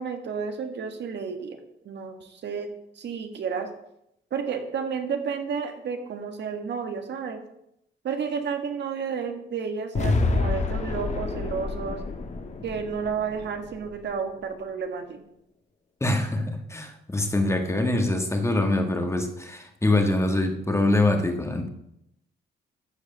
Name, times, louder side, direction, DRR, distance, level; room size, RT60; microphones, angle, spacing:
voice 1, 0.0-1.6 1.8-2.7 2.9-3.7 4.3-7.4 8.0-12.0 12.6-15.2, right 6 dB, 60° right, 6 dB, 1.7 m, -31 dB
sound 1, 9.9-14.1, left 3 dB, 35° left, 1.6 m, -28 dB
voice 2, 16.0-21.7, left 2 dB, 15° left, 4 dB, 1.7 m, -24 dB
13.5 x 4.9 x 6.8 m, 0.79 s
cardioid pair, 90°, 20 cm